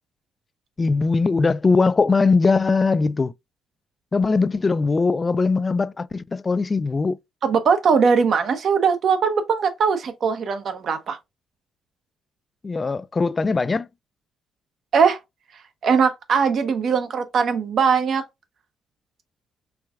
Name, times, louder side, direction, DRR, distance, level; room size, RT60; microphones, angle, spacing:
voice 1, 0.8-3.3 4.1-7.2 12.6-13.9, left 4 dB, 30° left, 0.3 m, -20 dB
voice 2, 7.4-11.2 14.9-15.2 15.8-18.2, right 6 dB, 60° right, 0.9 m, -20 dB
4.6 x 3.4 x 2.5 m
cardioid pair, 90°, 0 cm